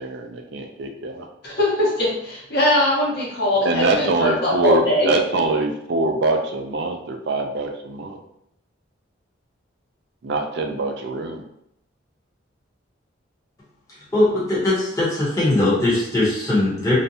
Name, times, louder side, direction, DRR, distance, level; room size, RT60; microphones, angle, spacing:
voice 1, 0.0-1.2 3.6-8.2 10.2-11.4, right 2 dB, 55° right, 4 dB, 0.3 m, -23 dB
voice 2, 1.4-5.1, left 1 dB, 55° left, -6 dB, 1.0 m, -21 dB
voice 3, 14.1-17.0, left 2 dB, 15° left, -8 dB, 0.9 m, -20 dB
2.5 x 2.1 x 2.7 m, 0.77 s
head